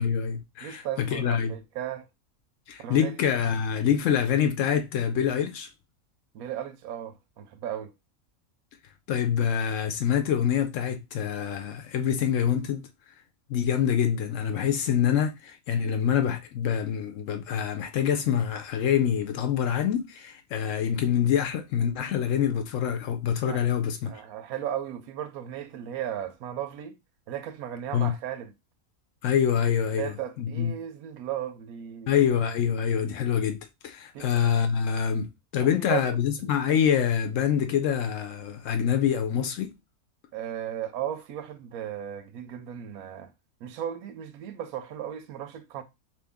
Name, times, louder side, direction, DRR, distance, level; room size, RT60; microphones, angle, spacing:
voice 1, 0.0-1.6 2.7-5.7 9.1-12.9 13.5-24.2 27.9-28.1 29.2-30.7 32.1-39.7, left 8 dB, 70° left, 0.9 m, -26 dB
voice 2, 0.6-2.0 2.8-3.1 6.3-7.9 23.5-23.7 24.1-27.0 27.3-28.5 30.0-32.1 34.1-34.3 35.6-36.0 36.4-36.5 40.3-43.3 43.6-45.8, right 10 dB, 85° right, 1.0 m, -35 dB
3.0 x 2.6 x 3.4 m
omnidirectional pair, 1.5 m